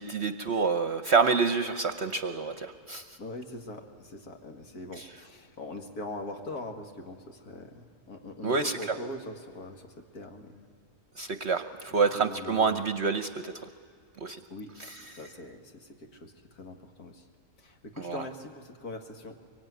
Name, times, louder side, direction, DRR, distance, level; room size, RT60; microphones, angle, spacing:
voice 1, 0.0-3.2 5.0-5.1 8.4-9.0 11.2-13.5 14.2-14.4 14.8-15.0 18.0-18.2, right 5 dB, 55° right, 10 dB, 0.9 m, -28 dB
voice 2, 3.2-10.7 12.1-12.8 14.5-14.7 15.0-17.3 17.6-19.4, left 2 dB, 80° left, 4 dB, 2.4 m, -42 dB
24.5 x 23.5 x 9.4 m, 2.2 s
omnidirectional pair, 1.6 m